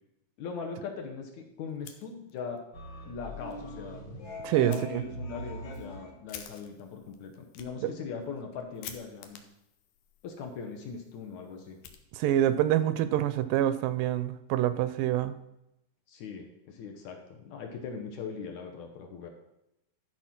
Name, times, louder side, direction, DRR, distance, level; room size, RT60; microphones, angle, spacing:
voice 1, 0.4-2.6 3.1-4.0 4.6-9.4 10.2-11.8 16.1-19.3, left 5 dB, 65° left, 2 dB, 2.1 m, -40 dB
Fire, 1.7-2.6 3.0-3.1 3.5-3.6 4.7-4.8 5.4-12.6, left 9 dB, 85° left, 2.6 m, -51 dB
sound 1, 2.7-6.1, equal, 50° left, 1.5 m, -42 dB
voice 2, 4.4-5.0 7.8-7.9 12.1-15.4, right 12 dB, 85° right, 13 dB, 2.1 m, -26 dB
12.5 x 4.3 x 6.0 m, 0.86 s
omnidirectional pair, 3.9 m